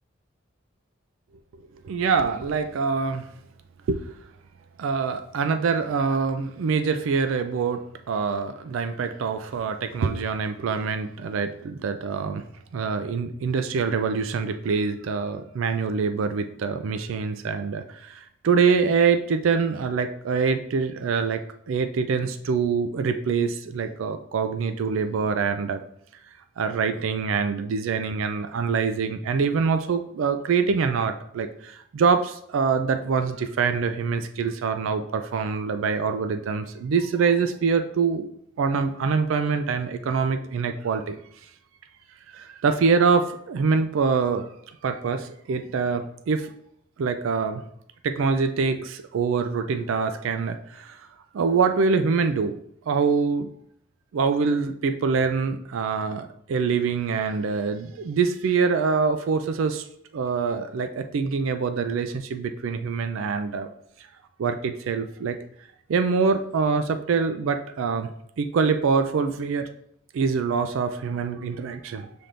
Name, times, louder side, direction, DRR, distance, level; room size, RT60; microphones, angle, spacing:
voice 1, 1.8-3.3 3.9-4.0 4.8-12.4 12.7-25.8 26.6-38.3 38.6-41.2 42.3-44.5 44.8-46.5 47.0-47.6 48.0-51.0 51.3-52.6 52.9-53.5 54.1-59.9 60.1-63.7 64.4-65.4 65.9-68.1 68.4-69.7 70.1-72.1, right 5 dB, 85° right, 8 dB, 0.4 m, -25 dB
5.8 x 3.4 x 2.5 m, 0.71 s
head